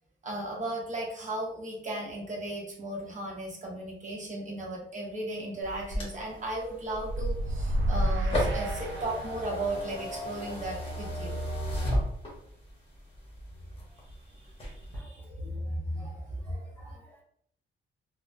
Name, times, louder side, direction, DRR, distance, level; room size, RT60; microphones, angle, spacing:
voice 1, 0.2-11.4 14.7-17.0, right 1 dB, 40° right, -2 dB, 0.7 m, -36 dB
sound 1, 5.6-12.7 13.2-14.1 14.5-15.0, equal, 30° left, 1.0 m, -33 dB
sound 2, 6.9-9.6, right 1 dB, 90° right, 0.4 m, -30 dB
voice 2, 14.9-17.2, equal, 10° left, -4 dB, 0.7 m, -55 dB
3.6 x 2.0 x 2.4 m, 0.64 s
wide cardioid pair, 150°, 20 cm